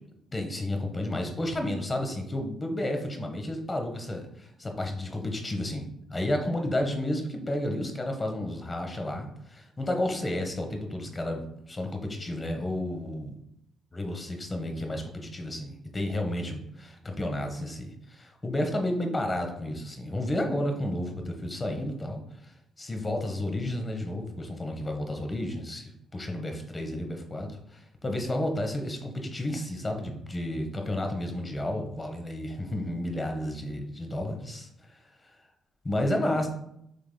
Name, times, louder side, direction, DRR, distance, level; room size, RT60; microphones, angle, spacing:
voice 1, 0.3-5.8 6.1-13.4 13.9-22.5 22.8-34.7 35.8-36.5, left 1 dB, 25° left, 4 dB, 0.9 m, -31 dB
6.4 x 3.5 x 2.2 m, 0.76 s
cardioid pair, 90°, 0 cm